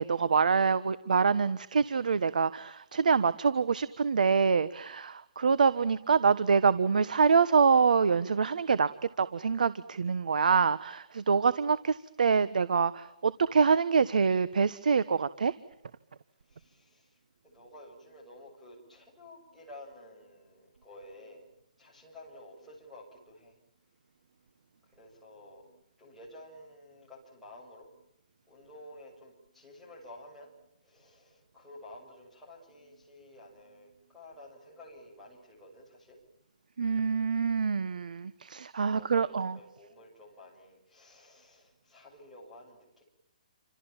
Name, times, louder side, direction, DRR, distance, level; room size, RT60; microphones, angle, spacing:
voice 1, 0.0-8.9 9.2-15.5 36.8-39.6, right 5 dB, 80° right, 16 dB, 1.3 m, -25 dB
voice 2, 16.5-21.5 21.8-23.6 24.9-25.6 26.0-27.9 28.5-30.5 30.8-36.2 38.9-43.0, left 1 dB, ahead, -8 dB, 7.3 m, -52 dB
29.0 x 26.5 x 7.4 m, 0.82 s
hypercardioid pair, 180°, 4 cm